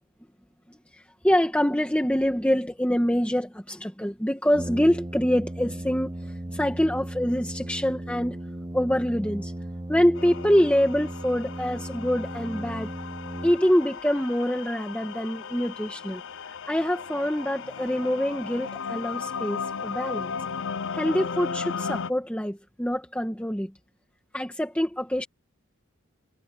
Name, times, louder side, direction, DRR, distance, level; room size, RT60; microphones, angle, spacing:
voice 1, 0.9-8.4 8.7-9.5 9.9-12.9 13.4-16.2 16.5-20.3 20.9-23.7 24.3-25.3, equal, 5° left, 1.5 m, -25 dB
Brass instrument, 4.5-14.0, right 1 dB, 15° right, 0.7 m, -36 dB
sound 1, 10.2-22.1, left 5 dB, 60° left, 0.6 m, -36 dB
head